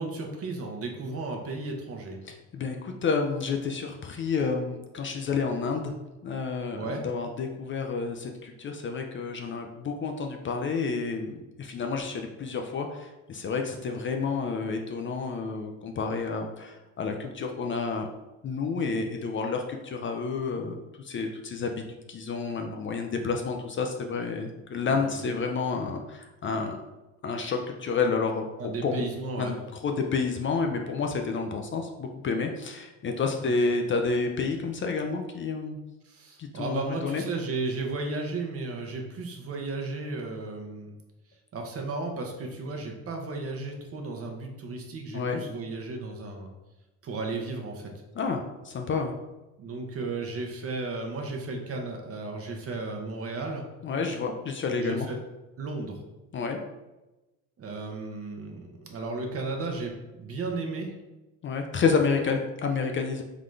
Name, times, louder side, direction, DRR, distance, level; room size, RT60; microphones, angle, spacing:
voice 1, 0.0-2.2 6.8-7.0 24.9-25.1 28.6-29.5 36.0-41.0 41.5-46.5 47.0-47.9 49.6-53.6 54.8-55.2 55.6-56.0 57.6-60.9, right 3 dB, 40° right, 2 dB, 0.9 m, -34 dB
voice 2, 2.3-5.9 6.2-18.1 18.4-21.8 22.1-26.8 27.2-29.0 29.4-35.8 36.4-37.2 45.1-45.4 48.1-49.1 53.8-55.1 56.3-56.6 61.4-63.2, left 4 dB, 35° left, 3 dB, 0.5 m, -30 dB
3.9 x 3.7 x 3.2 m, 1.0 s
cardioid pair, 105°, 36 cm